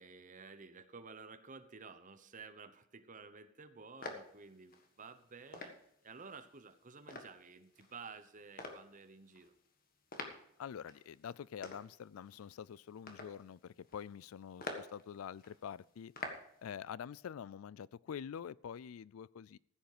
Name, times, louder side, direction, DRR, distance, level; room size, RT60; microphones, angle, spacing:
voice 1, 0.0-5.7 6.0-9.5, right 4 dB, 40° right, 0.9 m, -53 dB
sound 1, 4.0-16.7, left 3 dB, 45° left, 1.5 m, -49 dB
voice 2, 10.6-16.1 16.6-19.6, left 8 dB, 80° left, 0.4 m, -46 dB
14.5 x 8.1 x 5.0 m
head